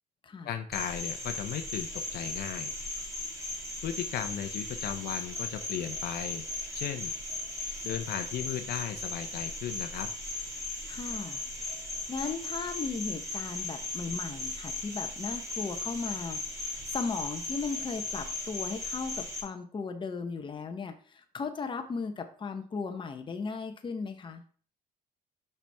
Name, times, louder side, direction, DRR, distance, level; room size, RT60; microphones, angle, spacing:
voice 1, 0.4-2.7 3.8-6.4 6.7-7.1 7.8-10.1, left 9 dB, 70° left, 7 dB, 0.7 m, -36 dB
Cricket, 0.7-19.4, left 2 dB, 20° right, 2.7 m, -37 dB
voice 2, 10.9-11.4 12.1-24.4, left 4 dB, 30° left, 6 dB, 1.0 m, -36 dB
5.7 x 5.7 x 3.5 m, 0.43 s
cardioid pair, 110°, 17 cm